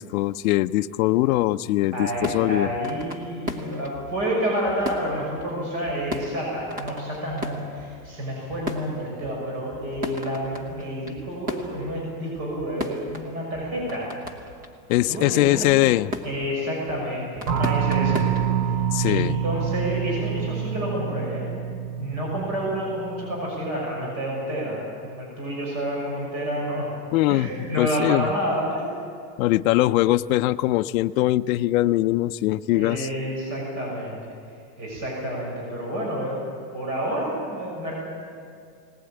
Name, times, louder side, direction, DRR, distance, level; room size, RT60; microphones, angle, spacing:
voice 1, 0.0-2.7 14.9-16.1 18.9-19.3 27.1-27.5 27.8-28.3 29.4-33.1, left 16 dB, 55° left, 9 dB, 0.6 m, -21 dB
voice 2, 1.9-14.1 15.1-15.7 16.2-18.3 19.1-21.5 22.0-26.9 27.3-29.0 32.7-34.3 34.8-36.4 36.7-37.9, equal, 35° right, -3 dB, 6.3 m, -29 dB
sound 1, 2.1-18.6, left 1 dB, 15° right, 1.1 m, -38 dB
sound 2, 17.5-23.8, right 8 dB, 65° right, 1.1 m, -27 dB
19.5 x 19.5 x 8.8 m, 2.2 s
supercardioid pair, 175°, 50 cm